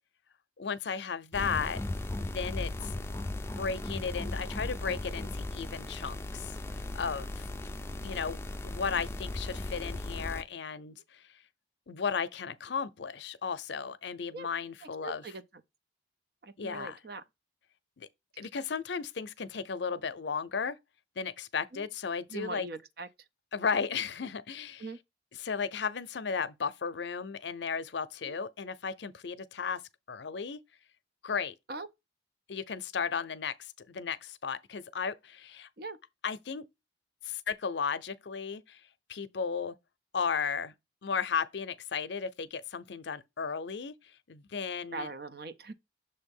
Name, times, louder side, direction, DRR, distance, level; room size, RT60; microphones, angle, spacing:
voice 1, 0.6-1.8 2.2-2.9 3.6-6.5 6.9-7.4 8.0-8.4 8.6-11.2 11.9-15.2 16.6-17.0 18.0-18.1 18.4-20.8 21.2-22.7 23.5-24.9 25.4-29.8 30.1-30.6 31.2-31.5 32.5-35.7 36.2-36.6 37.2-38.8 39.1-39.7 40.1-40.7 41.0-43.9 44.3-45.1, left 6 dB, 70° left, 0.6 m, -35 dB
sound 1, 1.3-10.4, left 2 dB, 15° left, 0.4 m, -37 dB
voice 2, 15.0-15.4 16.4-17.2 21.7-21.9 22.3-23.1 24.8-25.0 28.2-28.4 31.7-31.9 35.8-36.0 44.9-45.7, right 3 dB, 55° right, 0.6 m, -41 dB
6.8 x 2.8 x 5.3 m
head